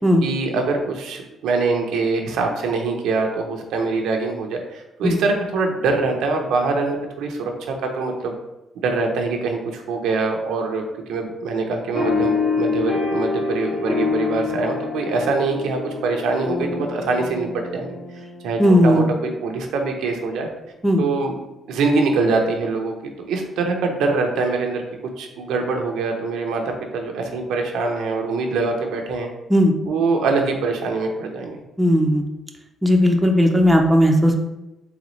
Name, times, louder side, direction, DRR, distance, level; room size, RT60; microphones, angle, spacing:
voice 1, 0.2-8.4 8.8-18.0 18.4-20.5 21.0-21.3 21.7-24.8 25.2-29.3 29.9-31.6, right 3 dB, 85° right, 3 dB, 0.7 m, -24 dB
sound 1, 11.9-18.8, left 4 dB, 50° left, 1.3 m, -26 dB
voice 2, 18.6-19.1 20.8-21.0 29.5-29.7 31.8-32.3 32.8-34.4, equal, 10° right, 2 dB, 0.6 m, -16 dB
3.9 x 3.6 x 3.1 m, 0.97 s
cardioid pair, 90°, 0 cm